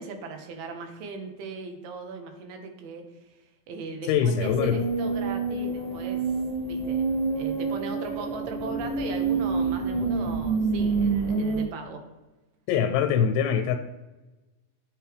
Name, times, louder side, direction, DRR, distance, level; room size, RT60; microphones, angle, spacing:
voice 1, 0.0-3.0 3.3-6.3 6.6-7.1 7.4-12.0, right 4 dB, 75° right, 5 dB, 2.5 m, -38 dB
voice 2, 4.1-4.8 12.7-13.8, left 8 dB, 90° left, 5 dB, 2.4 m, -23 dB
sound 1, 4.4-11.6, right 4 dB, 45° left, 0.4 m, -27 dB
9.3 x 3.2 x 3.3 m, 1.1 s
omnidirectional pair, 4.2 m